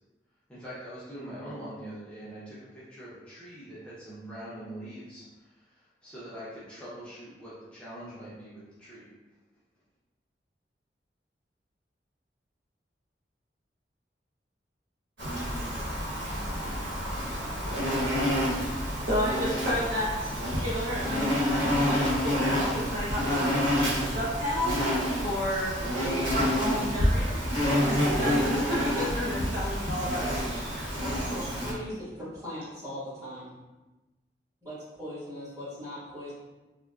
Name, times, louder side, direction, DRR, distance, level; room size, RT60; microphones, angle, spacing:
voice 1, 0.5-9.1, right 1 dB, 5° left, -11 dB, 0.7 m, -43 dB
Insect, 15.2-31.7, equal, 80° right, 1.1 m, -28 dB
voice 2, 19.1-20.1 20.6-23.5 24.0-24.8 25.2-27.4 27.9-30.3 31.0-31.5, equal, 55° right, -6 dB, 0.6 m, -31 dB
voice 3, 31.6-33.5 34.6-36.3, equal, 20° right, -11 dB, 1.5 m, -39 dB
3.5 x 2.1 x 2.3 m, 1.1 s
head